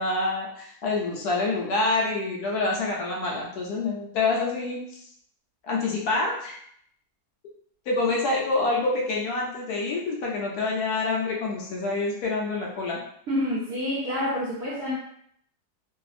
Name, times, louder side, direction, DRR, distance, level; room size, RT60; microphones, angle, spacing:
voice 1, 0.0-4.8 5.7-6.6 7.9-13.0, left 3 dB, 70° left, -2 dB, 1.0 m, -27 dB
voice 2, 13.3-14.9, left 1 dB, 70° right, -7 dB, 0.6 m, -28 dB
2.7 x 2.5 x 2.4 m, 0.66 s
omnidirectional pair, 1.9 m